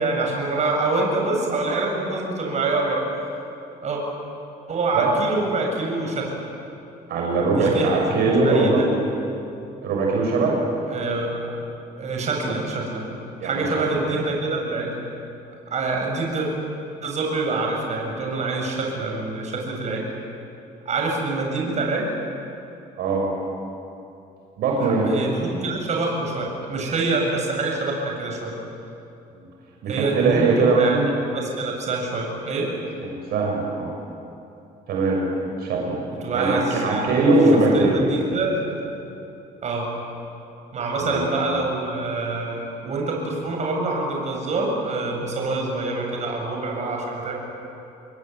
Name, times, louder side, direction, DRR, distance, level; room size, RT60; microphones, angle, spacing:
voice 1, 0.0-3.0 3.8-4.0 4.7-6.3 7.4-8.0 8.3-8.9 10.9-11.5 12.0-13.1 13.4-15.0 15.7-16.5 17.0-20.1 20.8-22.1 24.8-28.5 29.9-31.0 31.3-32.7 36.2-37.1 37.5-38.8 39.6-40.0 40.7-47.4, right 3 dB, 45° right, 0 dB, 7.7 m, -26 dB
voice 2, 7.1-8.8 9.8-10.6 13.4-13.7 23.0-23.3 24.6-25.1 29.3-29.4 29.8-31.0 33.0-33.9 34.9-35.2 35.6-36.0 36.3-38.0 41.0-41.2, right 3 dB, 70° right, -1 dB, 6.6 m, -20 dB
27.5 x 21.5 x 9.6 m, 2.8 s
cardioid pair, 115°, 17 cm